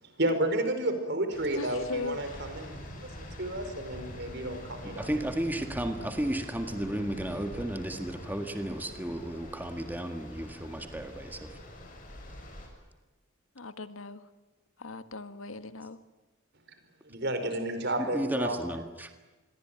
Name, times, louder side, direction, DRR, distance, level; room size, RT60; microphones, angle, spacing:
voice 1, 0.0-5.1 17.0-18.6, right 1 dB, 55° right, 8 dB, 5.0 m, -31 dB
sound 1, 1.3-12.7, left 1 dB, 40° left, 7.3 m, -44 dB
voice 2, 1.6-2.2 13.5-14.2 14.8-16.0, left 3 dB, 85° left, 10 dB, 1.6 m, -38 dB
voice 3, 5.0-11.5 18.1-19.1, right 1 dB, 10° right, 6 dB, 1.8 m, -33 dB
27.5 x 22.0 x 9.2 m, 1.2 s
head